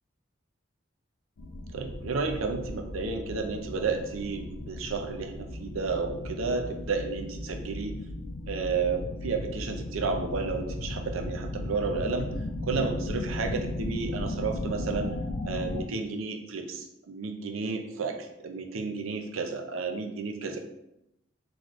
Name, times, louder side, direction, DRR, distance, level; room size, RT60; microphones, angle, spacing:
sound 1, 1.4-15.8, left 2 dB, 85° left, 0.5 m, -36 dB
voice 1, 1.7-8.0 8.5-12.3 12.6-15.1 15.4-20.6, right 4 dB, 90° right, 4 dB, 0.5 m, -32 dB
4.1 x 3.1 x 3.0 m, 0.86 s
head